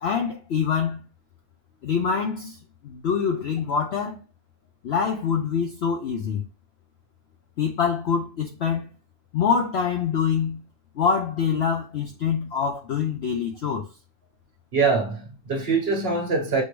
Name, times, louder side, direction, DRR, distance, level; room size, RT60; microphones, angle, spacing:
voice 1, 0.0-1.1 1.8-2.6 2.8-4.2 4.8-6.5 7.6-8.9 9.3-10.6 11.0-13.9, left 6 dB, 65° left, 0.6 m, -25 dB
voice 2, 14.7-16.6, right 4 dB, 45° right, 1.0 m, -23 dB
6.3 x 2.7 x 3.0 m
omnidirectional pair, 1.6 m